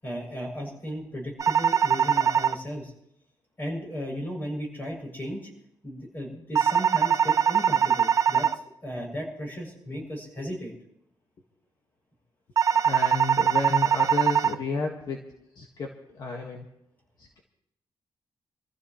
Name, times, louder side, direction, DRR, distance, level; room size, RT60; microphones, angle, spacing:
voice 1, 0.0-2.9 3.6-5.5 5.8-10.7, equal, 25° left, 0 dB, 7.0 m, -35 dB
sound 1, 1.4-2.5 6.5-8.5 12.6-14.5, right 7 dB, 40° right, 0.6 m, -22 dB
voice 2, 12.8-15.2 15.6-16.6 17.2-17.4, left 3 dB, 55° left, 0 dB, 1.7 m, -32 dB
25.5 x 15.0 x 3.1 m, 0.80 s
cardioid pair, 135°, 9 cm